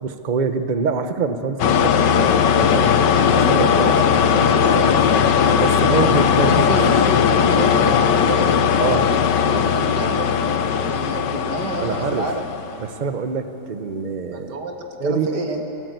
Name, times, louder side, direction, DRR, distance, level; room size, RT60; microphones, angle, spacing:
voice 1, 0.0-2.9 3.5-3.8 5.6-6.8 8.8-9.0 11.8-12.3 12.8-14.6 15.0-15.3, right 5 dB, 35° right, 8 dB, 0.9 m, -25 dB
sound 1, 1.6-12.8, left 7 dB, 85° left, 1.5 m, -18 dB
voice 2, 3.1-8.5 9.1-12.4 14.3-14.8 15.0-15.6, right 2 dB, 75° right, 3 dB, 2.5 m, -29 dB
29.5 x 15.0 x 8.1 m, 2.9 s
omnidirectional pair, 1.8 m